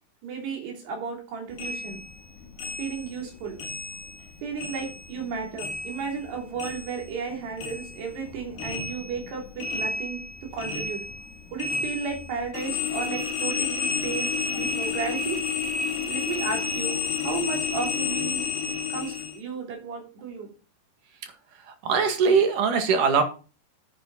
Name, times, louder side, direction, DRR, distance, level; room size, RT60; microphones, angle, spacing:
voice 1, 0.2-2.0 2.8-3.6 4.4-11.1 11.5-15.4 16.1-18.4 18.9-20.5, right 5 dB, 85° right, 1 dB, 5.5 m, -34 dB
sound 1, 1.6-4.3 4.6-7.3 7.6-19.4, left 5 dB, 65° left, 3.6 m, -31 dB
voice 2, 21.8-23.2, right 5 dB, 60° right, 5 dB, 3.2 m, -21 dB
10.5 x 9.7 x 4.1 m, 0.34 s
omnidirectional pair, 4.6 m